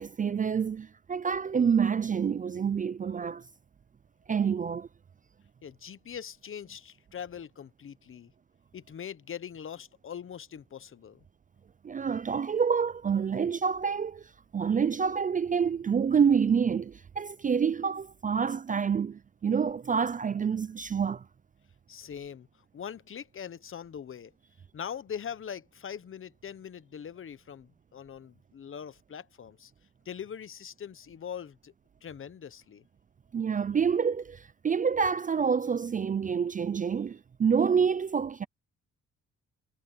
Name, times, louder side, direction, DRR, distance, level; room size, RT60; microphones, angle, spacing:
voice 1, 0.0-3.4 4.3-4.9 11.8-21.2 33.3-38.5, right 6 dB, 25° right, 0.4 m, -27 dB
voice 2, 5.6-8.3 8.7-11.2 21.9-24.3 24.7-29.7 30.0-31.7 32.0-32.8, left 8 dB, 45° left, 1.0 m, -42 dB
cardioid pair, 90°, 30 cm